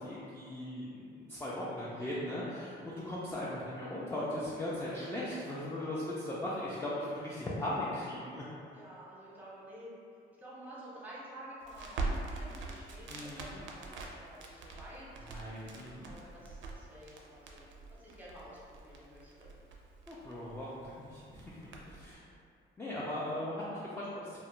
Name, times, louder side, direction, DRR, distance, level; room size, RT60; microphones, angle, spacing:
voice 1, 0.0-8.5 13.1-13.6 15.3-16.1 20.1-21.6 21.9-22.3 22.8-24.4, left 1 dB, 10° left, -7 dB, 0.4 m, -38 dB
voice 2, 1.9-2.3 5.3-5.6 8.7-9.9 10.4-15.1 16.1-17.7 18.0-19.5 20.7-20.9 21.8-21.9, equal, 10° right, -7 dB, 0.7 m, -51 dB
Crackle, 11.6-22.1, right 3 dB, 75° right, 0.4 m, -43 dB
2.3 x 2.0 x 3.0 m, 2.4 s
cardioid pair, 90°, 20 cm